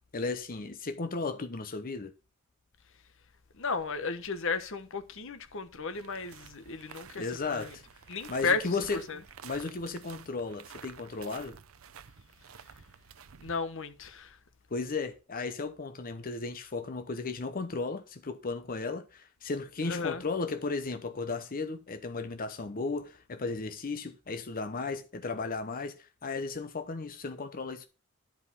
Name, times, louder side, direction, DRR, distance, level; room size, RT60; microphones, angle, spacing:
voice 1, 0.1-2.1 7.2-7.8 8.3-9.0 9.4-11.6 14.7-27.9, left 3 dB, 45° left, 0.8 m, -35 dB
voice 2, 3.5-7.7 8.1-8.8 9.1-9.2 13.4-14.4 19.9-20.3, left 4 dB, 65° left, 1.1 m, -34 dB
sound 1, 5.9-13.6, right 7 dB, 75° right, 0.7 m, -51 dB
10.5 x 4.9 x 5.4 m
head